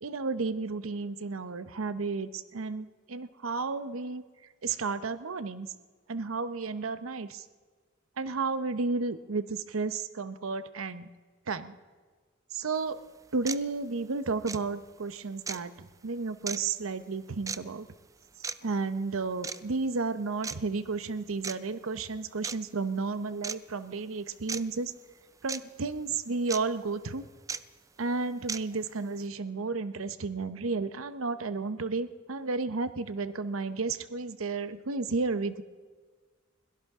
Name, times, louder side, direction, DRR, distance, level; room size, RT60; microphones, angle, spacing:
voice 1, 0.0-4.2 4.6-5.7 6.1-7.4 8.2-11.1 11.5-11.7 12.5-13.0 13.3-17.9 18.6-24.9 25.4-27.2 28.0-35.6, right 4 dB, 90° right, 12 dB, 0.8 m, -32 dB
sound 1, 12.7-12.8 13.5-13.6 14.4-14.6 15.5-15.6 16.5-16.6 17.5-17.6 18.4-18.6 19.4-19.6 20.4-20.6 21.4-21.5 22.4-22.6 23.4-23.6 24.5-24.6 25.5-25.6 26.5-26.6 27.5-27.6 28.5-28.6, right 5 dB, 15° right, 0.4 m, -34 dB
22.0 x 17.5 x 3.6 m, 1.5 s
head